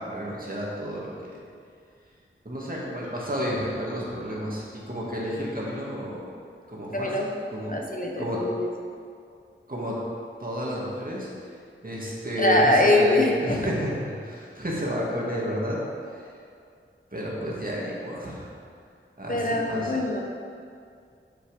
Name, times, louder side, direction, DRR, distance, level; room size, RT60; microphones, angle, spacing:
voice 1, 0.0-1.4 2.4-6.3 6.7-7.8 8.2-8.4 9.7-9.9 10.4-11.3 11.8-15.8 16.1-16.2 17.1-18.5 19.2-20.0, equal, 40° right, -5 dB, 2.2 m, -31 dB
voice 2, 6.9-7.2 7.7-8.7 12.4-13.6 19.3-20.2, left 1 dB, 40° left, 0 dB, 0.9 m, -23 dB
7.5 x 6.1 x 5.2 m, 2.3 s
wide cardioid pair, 40°, 21 cm